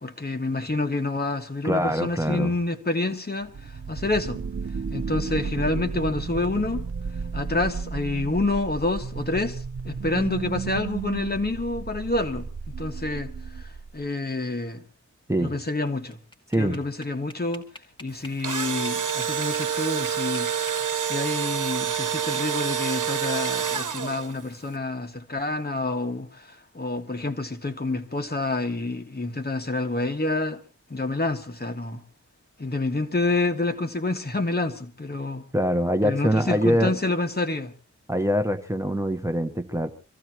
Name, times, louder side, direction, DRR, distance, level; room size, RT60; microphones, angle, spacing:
voice 1, 0.0-4.4 4.9-6.9 7.3-12.5 12.8-13.3 13.6-13.7 13.9-14.8 15.4-16.2 16.6-17.6 18.0-20.5 21.0-30.6 30.9-32.0 32.6-35.4 36.0-37.7, left 2 dB, 30° left, 1.7 m, -28 dB
voice 2, 1.6-2.6 15.3-15.5 16.5-16.8 35.5-37.0 38.1-39.9, equal, 10° right, 1.1 m, -24 dB
sound 1, 3.4-14.0, right 5 dB, 50° right, 0.8 m, -33 dB
sound 2, 15.9-19.7 20.1-21.6, left 1 dB, 15° left, 2.4 m, -45 dB
Engine / Drill, 18.2-24.4, right 8 dB, 90° right, 1.1 m, -27 dB
25.5 x 15.0 x 3.0 m
wide cardioid pair, 85°, 30 cm